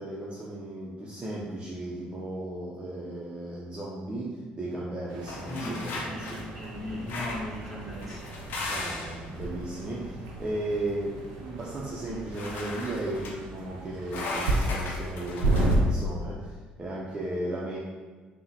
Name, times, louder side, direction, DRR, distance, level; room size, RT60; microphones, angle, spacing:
voice 1, 0.0-6.4 8.6-17.8, right 1 dB, 30° right, -5 dB, 0.6 m, -35 dB
sound 1, 5.1-15.8, right 2 dB, 85° right, 0.5 m, -33 dB
sound 2, 5.3-6.4 7.1-7.5 8.0-9.2 12.3-13.3 14.1-15.8, left 2 dB, 65° left, 0.6 m, -36 dB
voice 2, 5.4-8.7, left 1 dB, ahead, -7 dB, 1.3 m, -38 dB
3.5 x 2.1 x 2.8 m, 1.4 s
supercardioid pair, 70°, 4 cm